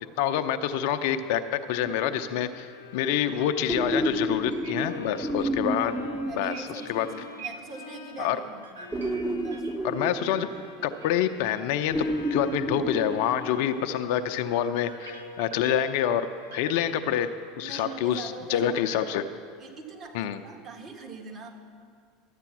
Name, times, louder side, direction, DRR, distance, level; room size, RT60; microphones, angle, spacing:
voice 1, 0.2-6.0 6.4-6.5 6.9-7.1 8.2-8.4 9.8-10.5 10.8-16.3 16.5-17.3 17.6-19.2 20.1-20.4, left 10 dB, 65° left, 9 dB, 0.6 m, -27 dB
sound 1, 1.8-2.6 3.7-7.2 8.9-11.2 11.9-13.9 15.6-15.7, right 1 dB, 15° right, 0.8 m, -31 dB
Bowed string instrument, 2.6-18.6, left 6 dB, 90° left, 0.9 m, -47 dB
sound 2, 4.5-4.7 5.0-5.1 5.4-5.5 6.5-7.8 8.6-10.7 11.0-11.2 11.4-11.6 11.9-12.1 12.5-12.6 13.5-13.6 14.8-18.0 18.8-19.4 19.8-20.1, right 4 dB, 85° right, 0.8 m, -46 dB
voice 2, 4.7-5.9 6.2-9.1 9.4-9.7 17.6-18.8 19.6-21.5, right 4 dB, 45° right, 2 dB, 1.7 m, -43 dB
12.5 x 8.3 x 6.1 m, 2.1 s
hypercardioid pair, 80°, 0 cm